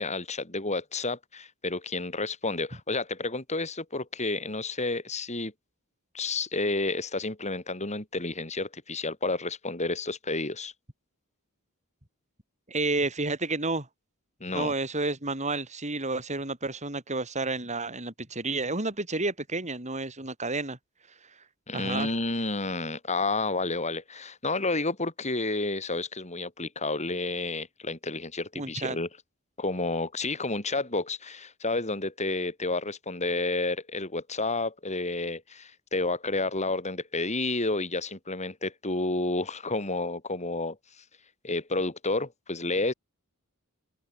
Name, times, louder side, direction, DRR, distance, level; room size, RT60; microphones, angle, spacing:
voice 1, 0.0-5.5 6.1-10.7 14.4-14.7 21.7-29.1 29.6-41.0 41.4-42.9, left 2 dB, 30° left, 6.4 m, -30 dB
voice 2, 12.7-13.9 14.5-20.8 21.7-22.1 28.6-29.0, right 3 dB, 30° right, 5.3 m, -30 dB
open air
head